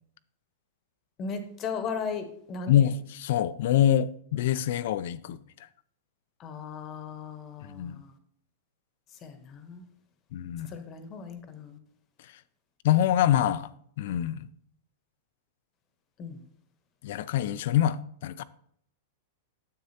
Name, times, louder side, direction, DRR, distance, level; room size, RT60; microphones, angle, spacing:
voice 1, 1.2-2.9 6.4-8.1 9.2-9.8 10.7-11.8 16.2-16.4, left 5 dB, 25° left, 1.0 m, -37 dB
voice 2, 2.7-5.4 7.7-8.0 10.3-10.7 12.8-14.5 17.0-18.4, left 11 dB, 60° left, 0.4 m, -25 dB
9.6 x 7.6 x 2.8 m
supercardioid pair, 155°, 0 cm